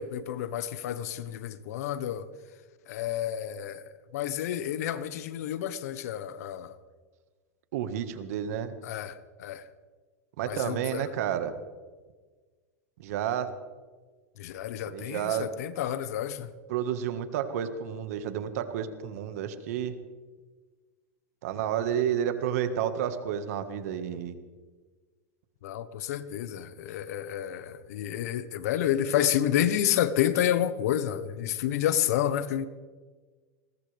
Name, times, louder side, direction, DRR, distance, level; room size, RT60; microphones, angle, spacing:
voice 1, 0.0-2.2 2.9-3.8 4.1-6.7 8.8-9.6 10.4-11.1 14.4-16.5 25.6-32.7, left 10 dB, 75° left, 1.3 m, -29 dB
voice 2, 7.7-8.7 10.4-11.5 13.0-13.5 14.9-15.5 16.7-19.9 21.4-24.3, right 9 dB, 70° right, 1.8 m, -30 dB
21.5 x 18.5 x 3.5 m
supercardioid pair, 120°, 9 cm